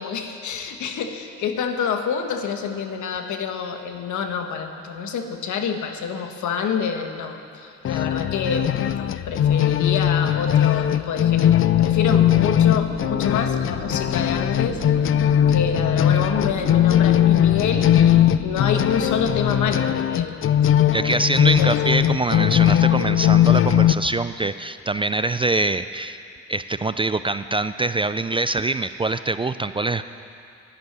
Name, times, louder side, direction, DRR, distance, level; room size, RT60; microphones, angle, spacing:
voice 1, 0.0-14.8 15.5-20.4 21.2-21.3 21.5-21.7 24.0-24.1, left 6 dB, 75° left, 6 dB, 1.4 m, -27 dB
sound 1, 7.8-23.9, left 11 dB, 45° left, 0.4 m, -19 dB
sound 2, 11.6-19.8, right 4 dB, 35° right, 1.7 m, -36 dB
voice 2, 20.9-26.2 26.5-30.1, right 2 dB, 20° right, 12 dB, 0.3 m, -24 dB
12.0 x 11.0 x 9.6 m, 2.5 s
cardioid pair, 90°, 30 cm